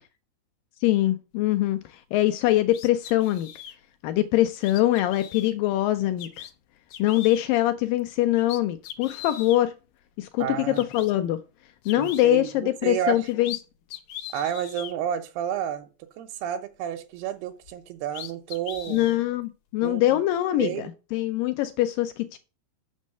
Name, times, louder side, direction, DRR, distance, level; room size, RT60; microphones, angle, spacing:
voice 1, 0.8-3.5 4.0-6.4 7.0-9.7 10.2-11.4 11.9-13.5 18.9-22.4, left 14 dB, 90° left, 1.9 m, -23 dB
sound 1, 2.7-3.8 4.6-5.5 6.2-6.5 6.9-7.4 8.0-8.1 8.4-9.6 10.4-10.5 10.7-11.1 11.8-12.2 13.1-13.6 13.9-14.9 17.7-17.8 18.1-19.2, left 11 dB, 75° left, 1.8 m, -40 dB
voice 2, 10.4-10.9 12.0-13.3 14.3-15.9 16.2-19.1 19.8-20.0 20.6-20.9, right 9 dB, 90° right, 2.8 m, -30 dB
6.3 x 6.3 x 6.5 m
omnidirectional pair, 4.5 m